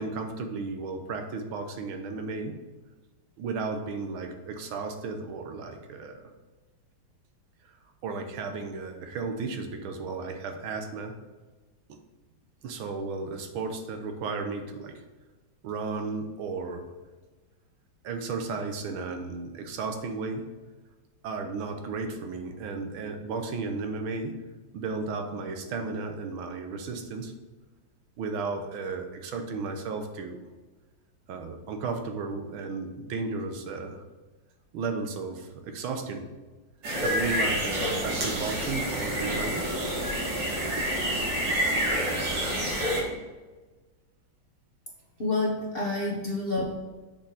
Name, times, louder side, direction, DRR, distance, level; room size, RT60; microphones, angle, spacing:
voice 1, 0.0-2.6 3.4-6.3 8.0-11.1 11.9-12.0 12.6-15.0 15.6-16.9 18.0-20.4 21.2-24.4 24.7-27.3 28.2-30.4 31.3-34.0 34.7-36.3 37.0-39.7, right 4 dB, 80° right, 6 dB, 1.7 m, -34 dB
sound 1, 36.8-43.0, equal, 65° right, 2.5 m, -28 dB
voice 2, 45.2-46.7, left 2 dB, 35° left, -3 dB, 1.0 m, -28 dB
7.0 x 5.1 x 5.0 m, 1.3 s
omnidirectional pair, 2.2 m